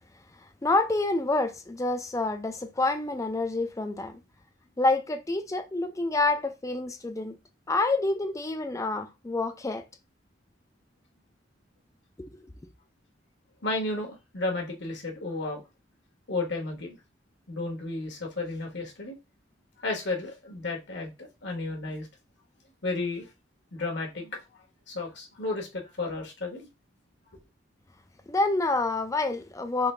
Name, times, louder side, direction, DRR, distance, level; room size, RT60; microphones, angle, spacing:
voice 1, 0.6-4.2 4.8-7.4 7.7-9.9 12.2-12.5 28.3-29.9, left 2 dB, 15° left, 0.4 m, -27 dB
voice 2, 13.6-15.6 16.3-17.0 17.5-19.2 19.8-22.1 22.8-23.3 23.7-26.7, left 2 dB, 65° left, 1.3 m, -33 dB
3.8 x 2.6 x 3.3 m
head